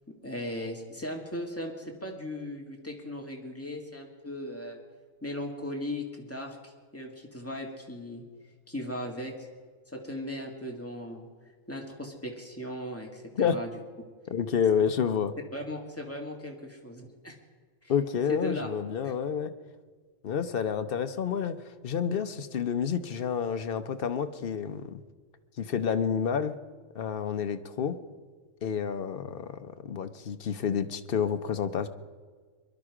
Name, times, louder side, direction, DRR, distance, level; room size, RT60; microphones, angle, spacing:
voice 1, 0.2-4.8 5.2-8.2 8.7-9.5 9.9-11.3 11.7-13.7 15.5-17.4 17.8-17.9 18.4-18.7 19.0-19.1, left 1 dB, 10° left, 0 dB, 2.0 m, -37 dB
voice 2, 14.3-15.3 17.9-19.5 20.2-25.0 25.6-26.5 26.9-28.0 28.6-31.9, left 7 dB, 50° left, 9 dB, 0.9 m, -29 dB
22.5 x 11.5 x 4.9 m, 1.5 s
omnidirectional pair, 1.3 m